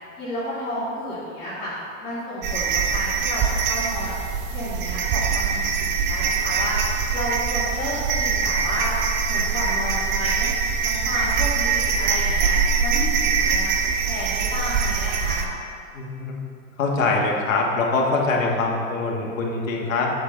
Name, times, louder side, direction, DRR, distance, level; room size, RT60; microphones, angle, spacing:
voice 1, 0.2-1.7 2.0-4.1 4.5-6.8 7.1-9.0 9.3-10.5 10.8-12.5 12.8-13.7 14.0-15.5, left 1 dB, 20° left, -12 dB, 2.1 m, -31 dB
sound 1, 2.4-15.5, right 5 dB, 30° right, 0.6 m, -23 dB
voice 2, 15.9-16.3 16.8-20.1, left 3 dB, 75° left, -1 dB, 1.7 m, -23 dB
7.9 x 6.8 x 3.9 m, 2.3 s
hypercardioid pair, 125°, 39 cm